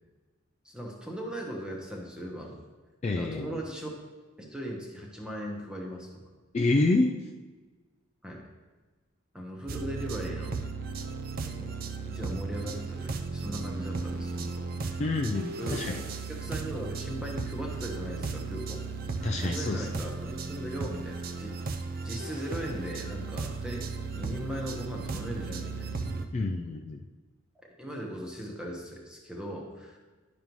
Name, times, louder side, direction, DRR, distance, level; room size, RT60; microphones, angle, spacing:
voice 1, 0.6-2.6 3.1-3.9 4.4-6.3 8.2-8.4 9.3-10.6 11.5-11.7 12.1-15.0 15.5-15.9 16.3-18.8 19.4-21.6 22.0-25.9 27.8-30.0, equal, 5° right, -1 dB, 1.0 m, -38 dB
voice 2, 3.0-3.6 6.5-7.1 15.0-16.0 19.2-19.9 26.3-27.0, left 2 dB, 30° left, 1 dB, 0.3 m, -27 dB
sound 1, 9.7-26.3, right 4 dB, 45° right, 0.4 m, -35 dB
10.5 x 5.3 x 3.0 m, 1.3 s
head